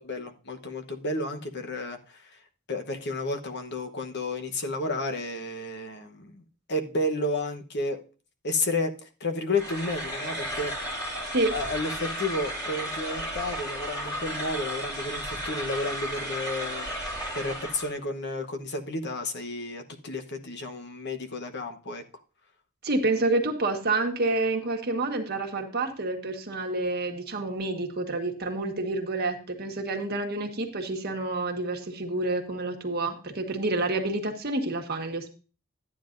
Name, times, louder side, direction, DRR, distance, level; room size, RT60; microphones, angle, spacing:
voice 1, 0.0-2.2 2.7-6.4 6.7-8.0 8.4-8.9 9.2-10.7 11.1-16.9 17.3-22.0, left 2 dB, 55° left, 6 dB, 1.1 m, -32 dB
sound 1, 9.5-18.0, equal, 20° left, 2.8 m, -34 dB
voice 2, 22.8-35.3, right 2 dB, 45° right, 2 dB, 1.6 m, -28 dB
12.5 x 9.6 x 2.6 m, 0.35 s
head